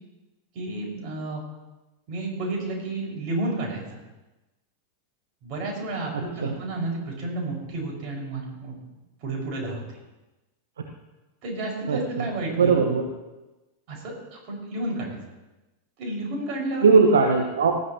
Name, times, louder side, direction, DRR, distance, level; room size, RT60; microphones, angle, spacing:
voice 1, 0.5-1.4 2.1-4.0 5.4-8.8 9.2-10.0 11.4-12.8 13.9-15.2 16.0-16.9, right 2 dB, 40° right, -1 dB, 5.6 m, -31 dB
voice 2, 6.1-6.5 11.9-12.3 12.6-13.1 16.8-17.7, right 4 dB, 65° right, 3 dB, 1.3 m, -20 dB
19.5 x 13.5 x 3.0 m, 1.1 s
figure-of-eight pair, 90°, 0 cm